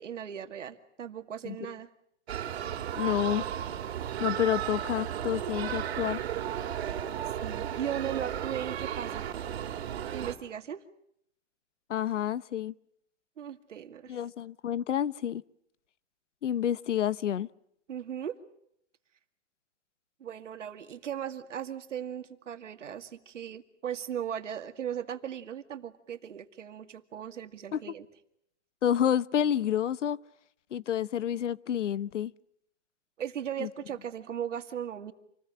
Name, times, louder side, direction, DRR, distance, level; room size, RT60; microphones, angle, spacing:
voice 1, 0.0-1.9 7.4-9.3 10.1-10.8 13.4-14.2 17.9-18.4 20.2-28.1 33.2-35.1, right 9 dB, 80° right, 2.3 m, -37 dB
sound 1, 2.3-10.3, right 10 dB, 60° right, 2.9 m, -34 dB
voice 2, 2.9-3.4 4.2-6.2 11.9-12.7 14.1-15.4 16.4-17.5 27.7-27.8 28.8-30.2 30.7-32.3 33.6-33.7, left 10 dB, 80° left, 1.0 m, -29 dB
28.0 x 20.5 x 8.8 m
hypercardioid pair, 155°, 36 cm